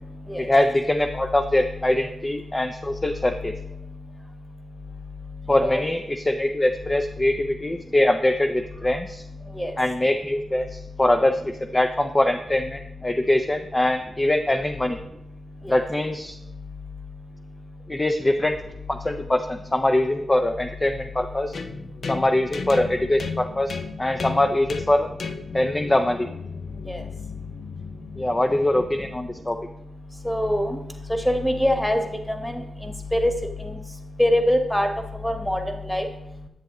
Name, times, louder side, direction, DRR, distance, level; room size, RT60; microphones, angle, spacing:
voice 1, 0.4-3.5 5.5-9.2 9.8-15.0 15.7-16.4 17.9-18.6 18.9-21.6 22.1-25.1 25.5-26.3 28.2-29.6, left 1 dB, 20° left, 6 dB, 0.5 m, -23 dB
sound 1, 21.5-29.3, left 5 dB, 70° left, 0.6 m, -35 dB
voice 2, 30.2-30.8 31.2-33.3 33.6-33.8 34.2-34.9 35.2-36.1, equal, 5° left, 5 dB, 1.3 m, -24 dB
10.0 x 7.9 x 3.0 m, 0.84 s
cardioid pair, 65°, 0 cm